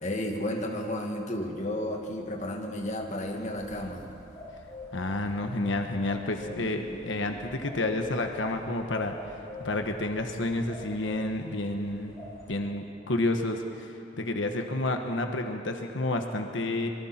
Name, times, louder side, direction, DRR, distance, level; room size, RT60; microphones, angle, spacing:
voice 1, 0.0-4.0, left 1 dB, 40° left, 1 dB, 2.1 m, -32 dB
sound 1, 1.9-8.4, left 1 dB, 65° left, 2.9 m, -51 dB
sound 2, 3.5-12.5, left 3 dB, 20° left, 6.6 m, -47 dB
voice 2, 4.9-9.2 9.6-12.1 12.5-13.9 14.2-16.9, left 2 dB, 85° left, 4 dB, 1.3 m, -30 dB
25.5 x 22.5 x 4.4 m, 2.8 s
head